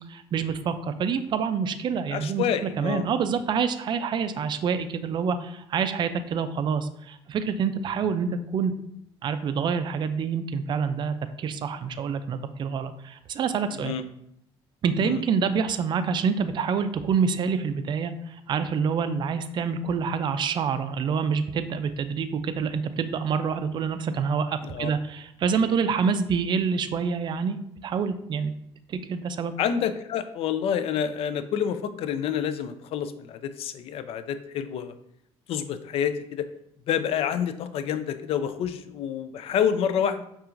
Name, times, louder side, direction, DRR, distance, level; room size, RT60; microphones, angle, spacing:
voice 1, 0.1-8.7 9.2-13.9 14.8-27.6 27.8-28.5 28.9-29.5, right 6 dB, 45° right, 10 dB, 0.3 m, -27 dB
voice 2, 2.1-3.1 4.4-4.5 13.7-14.0 15.0-15.2 24.6-24.9 29.6-34.9 35.5-36.5 36.9-40.2, left 8 dB, 65° left, 11 dB, 0.4 m, -28 dB
5.5 x 2.4 x 2.5 m, 0.75 s
cardioid pair, 100°, 11 cm